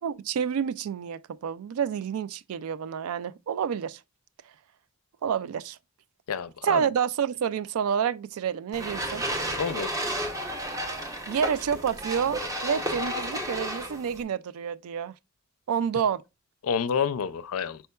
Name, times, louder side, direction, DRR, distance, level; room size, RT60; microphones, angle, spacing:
voice 1, 0.0-4.0 5.2-5.8 6.6-9.3 11.3-15.2 15.7-16.2, right 8 dB, 80° right, 0.3 m, -29 dB
voice 2, 6.3-6.9 9.5-9.9 16.6-17.8, left 6 dB, 80° left, 0.4 m, -28 dB
sound 1, 8.7-14.2, equal, 15° right, 0.7 m, -32 dB
5.4 x 4.4 x 2.2 m
head